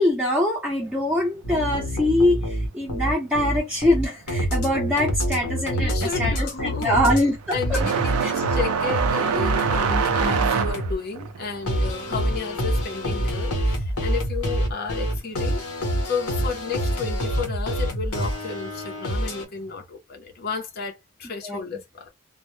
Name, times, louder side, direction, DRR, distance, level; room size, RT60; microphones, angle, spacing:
voice 1, 0.0-7.8 8.2-8.3 21.4-21.6, left 1 dB, 5° right, 0.5 m, -23 dB
sound 1, 1.4-7.2 7.5-10.9 11.7-19.4, equal, 90° left, 0.8 m, -26 dB
sound 2, 5.1-5.4 5.8-14.1 14.4-15.4 16.4-16.5 17.3-17.4 19.1-19.3, right 6 dB, 85° right, 0.4 m, -26 dB
voice 2, 5.7-7.0 7.5-15.6 16.1-22.1, left 5 dB, 45° left, 0.5 m, -32 dB
2.0 x 2.0 x 3.0 m
head